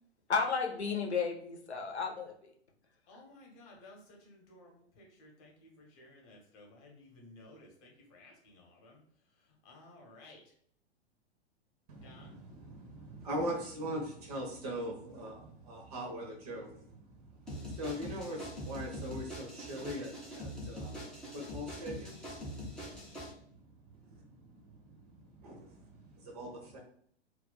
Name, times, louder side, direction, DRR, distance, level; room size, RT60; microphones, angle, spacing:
voice 1, 0.3-2.3, left 5 dB, 75° left, 2 dB, 0.8 m, -33 dB
voice 2, 3.1-10.5 12.0-12.4, left 2 dB, 30° left, 0 dB, 1.0 m, -57 dB
voice 3, 11.9-23.2 23.4-23.6 25.1-26.8, equal, 35° right, 1 dB, 0.7 m, -41 dB
sound 1, 17.5-23.3, equal, ahead, 0.5 m, -43 dB
2.4 x 2.3 x 3.7 m, 0.62 s
figure-of-eight pair, 105°, 33 cm